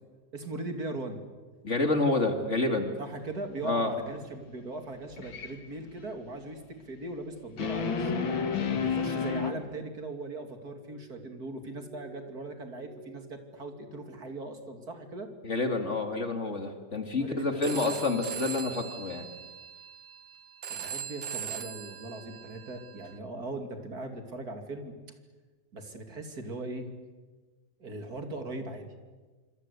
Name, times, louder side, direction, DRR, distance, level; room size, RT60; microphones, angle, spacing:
voice 1, 0.3-1.2 3.0-8.2 8.7-15.3 17.2-18.0 20.7-25.0 25.7-26.9 27.8-28.9, right 2 dB, 50° right, 6 dB, 3.0 m, -39 dB
voice 2, 1.6-2.9 3.6-3.9 15.4-19.3, left 2 dB, 40° left, 6 dB, 2.5 m, -28 dB
sound 1, 5.1-5.5 7.6-9.5, left 6 dB, 85° left, 2.7 m, -30 dB
Glass, 10.8-15.3 15.6-16.3 16.7-17.2 17.8-18.1, right 4 dB, 5° right, 4.0 m, -56 dB
Telephone, 17.6-23.2, right 8 dB, 70° right, 1.8 m, -40 dB
27.0 x 25.5 x 8.3 m, 1.3 s
omnidirectional pair, 2.1 m